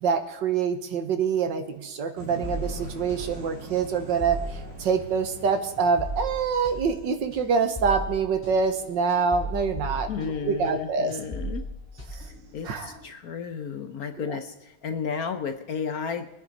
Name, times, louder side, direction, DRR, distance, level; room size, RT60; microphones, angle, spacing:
voice 1, 0.0-4.4 4.8-11.2 12.7-12.9 14.2-14.4, right 5 dB, 70° right, 8 dB, 1.8 m, -25 dB
sound 1, 2.2-8.0, right 1 dB, 35° right, 3.8 m, -44 dB
sound 2, 2.4-10.8 11.1-13.0, equal, 5° left, 5.9 m, -37 dB
voice 2, 10.1-11.7 12.5-16.3, left 6 dB, 60° left, 8 dB, 1.1 m, -33 dB
24.0 x 9.7 x 4.1 m, 1.0 s
omnidirectional pair, 2.1 m